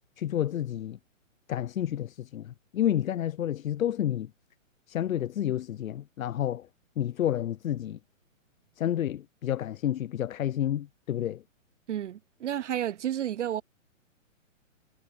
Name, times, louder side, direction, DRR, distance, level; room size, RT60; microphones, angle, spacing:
voice 1, 0.2-1.0 1.5-4.3 4.9-6.7 7.0-8.0 8.8-11.4, left 11 dB, 85° left, 0.7 m, -30 dB
voice 2, 11.9-13.6, right 11 dB, 65° right, 0.5 m, -31 dB
hypercardioid pair, 170°, 39 cm